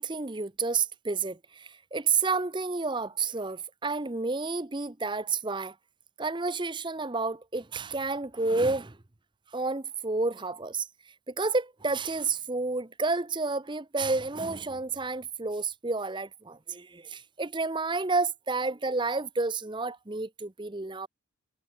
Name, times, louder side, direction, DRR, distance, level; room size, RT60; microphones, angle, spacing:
voice 1, 0.0-5.7 6.2-9.0 9.5-10.9 11.3-21.1, right 3 dB, 20° right, 0.8 m, -30 dB
head